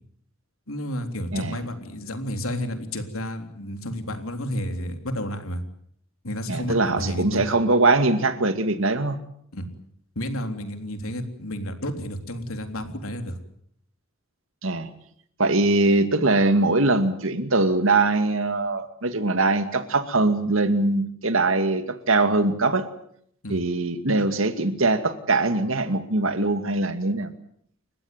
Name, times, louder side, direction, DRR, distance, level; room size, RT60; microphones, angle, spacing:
voice 1, 0.7-5.6 6.2-7.6 9.5-9.7 10.2-13.4 23.4-23.6, equal, 80° left, 6 dB, 3.6 m, -31 dB
voice 2, 6.5-9.2 14.6-14.9 15.4-22.9 23.5-27.3, right 2 dB, 65° right, 9 dB, 2.3 m, -22 dB
30.0 x 15.5 x 9.2 m, 0.68 s
head